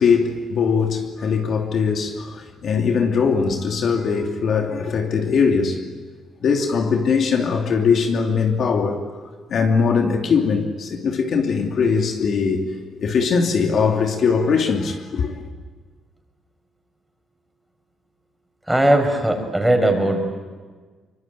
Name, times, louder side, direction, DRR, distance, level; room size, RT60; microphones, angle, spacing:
voice 1, 0.0-5.8 6.4-9.0 9.5-15.4, left 5 dB, 60° left, 2.8 m, -21 dB
voice 2, 18.7-20.2, right 1 dB, 5° right, 5.7 m, -19 dB
25.0 x 23.0 x 9.4 m
cardioid pair, 90°, 0 cm